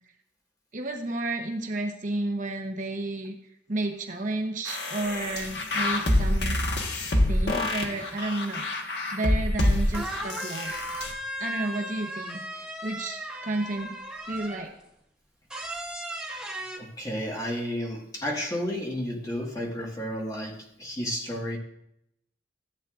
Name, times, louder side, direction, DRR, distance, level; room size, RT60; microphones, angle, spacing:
voice 1, 0.7-3.4 3.7-6.6 7.3-8.7 9.1-10.7 11.4-14.0 14.3-14.7, right 2 dB, 45° right, 4 dB, 0.9 m, -32 dB
sound 1, 4.7-11.1, left 1 dB, 65° left, 1.3 m, -26 dB
sound 2, 9.6-9.7 9.9-14.8 15.5-16.8, right 1 dB, 5° right, 1.0 m, -36 dB
voice 2, 16.8-21.6, equal, 20° left, -1 dB, 1.7 m, -32 dB
14.0 x 8.0 x 2.5 m, 0.77 s
head